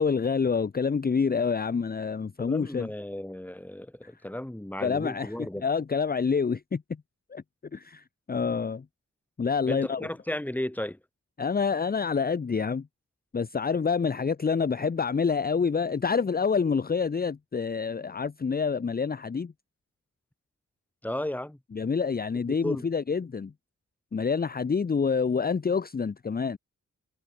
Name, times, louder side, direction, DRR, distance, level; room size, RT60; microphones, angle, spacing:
voice 1, 0.0-2.9 4.8-6.8 7.3-7.4 7.7-8.8 9.4-10.1 11.4-12.9 13.3-19.5 21.7-23.5 24.1-26.6, left 5 dB, 30° left, 0.7 m, -27 dB
voice 2, 2.4-5.6 9.7-11.0 21.0-21.6 22.5-22.9, left 1 dB, 5° left, 1.7 m, -34 dB
wide cardioid pair, 145°, 29 cm